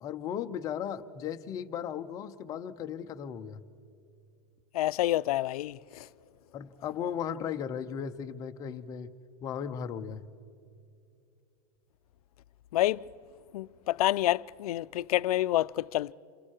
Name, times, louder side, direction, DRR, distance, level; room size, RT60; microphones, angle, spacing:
voice 1, 0.0-3.6 6.5-9.1 9.4-10.3, left 8 dB, 20° left, 0.6 m, -36 dB
voice 2, 4.7-6.1 12.7-13.0 13.5-16.1, left 15 dB, 75° left, 0.5 m, -28 dB
29.0 x 26.0 x 4.5 m
supercardioid pair, 180°, 19 cm